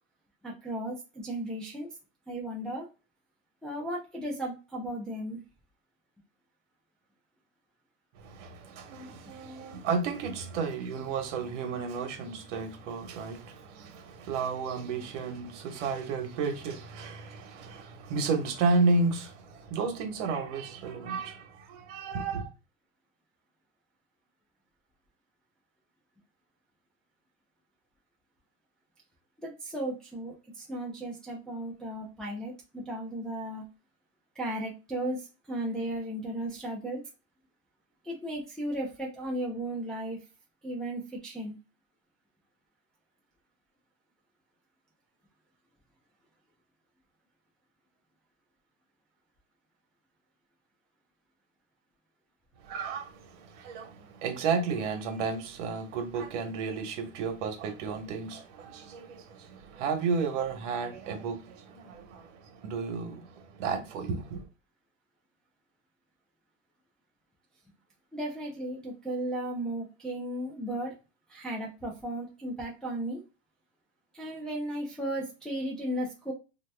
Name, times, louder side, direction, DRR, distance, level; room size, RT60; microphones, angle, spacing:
voice 1, 0.4-1.9 2.3-2.9 3.6-5.4 29.4-33.6 34.4-37.0 38.0-40.2 40.6-41.6 68.1-71.0 71.3-73.2 74.1-76.3, right 1 dB, ahead, 0.4 m, -35 dB
voice 2, 8.1-22.5 52.6-64.4, right 4 dB, 65° right, 1.1 m, -32 dB
2.8 x 2.1 x 3.3 m
supercardioid pair, 145°, 38 cm